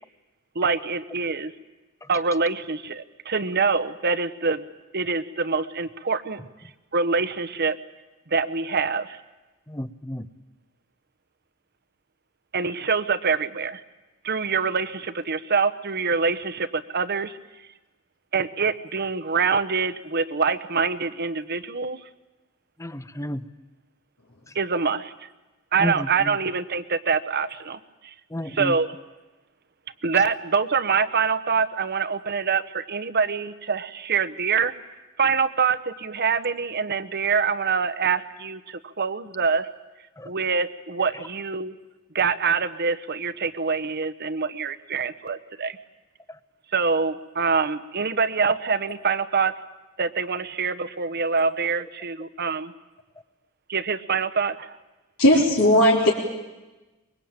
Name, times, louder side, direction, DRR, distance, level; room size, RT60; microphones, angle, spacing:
voice 1, 0.5-1.5 2.1-4.6 4.9-6.4 6.9-7.8 8.3-9.2 12.5-13.8 14.2-17.4 18.3-22.0 24.5-25.3 25.7-27.8 28.4-28.9 30.0-34.7 35.2-39.7 40.2-41.7 42.1-45.8 46.7-49.5 50.0-52.7 53.7-54.7, right 5 dB, 50° right, 11 dB, 1.1 m, -25 dB
voice 2, 9.7-10.3 22.8-23.4 25.8-26.4 28.3-28.7 40.2-40.3, equal, 15° left, 13 dB, 0.9 m, -31 dB
voice 3, 55.2-56.1, left 1 dB, 80° left, -5 dB, 4.1 m, -17 dB
24.5 x 22.5 x 8.9 m, 1.1 s
head